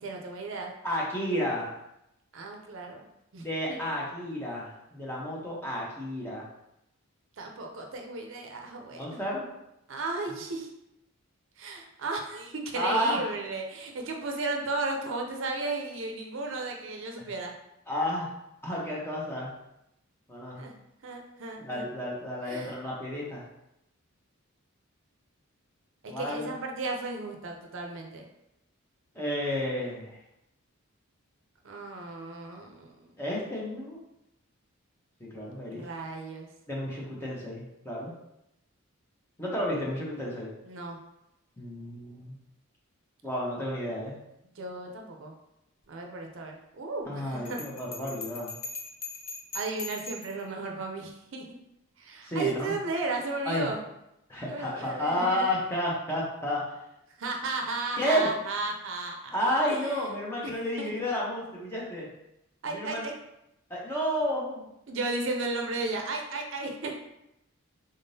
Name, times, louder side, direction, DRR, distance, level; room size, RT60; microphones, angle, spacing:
voice 1, 0.0-0.7 2.3-3.1 3.3-3.8 7.4-9.2 9.9-10.7 11.6-17.5 20.6-20.7 21.0-21.9 22.4-22.8 26.0-28.3 31.6-32.9 35.7-36.5 40.7-41.0 44.6-45.3 45.9-47.6 49.5-51.4 52.0-53.8 54.5-55.5 57.2-59.3 59.7-60.1 60.4-60.5 60.8-60.9 62.6-63.1 64.9-66.9, right 3 dB, 60° right, 2 dB, 0.5 m, -34 dB
voice 2, 0.8-1.7 3.4-6.4 8.9-9.5 12.7-13.2 17.2-17.3 17.9-18.3 18.6-19.5 20.3-20.6 21.6-23.4 26.1-26.5 29.1-30.2 33.2-34.0 35.2-35.8 36.7-38.1 39.4-40.5 41.6-42.4 43.2-44.1 47.1-48.5 52.2-52.7 53.5-53.7 54.3-56.6 58.0-58.3 59.3-62.1 62.6-63.0 63.7-64.7, equal, 10° left, -5 dB, 0.8 m, -31 dB
Bell, 47.5-50.4, left 3 dB, 40° left, 0.5 m, -40 dB
3.7 x 3.6 x 2.7 m, 0.84 s
head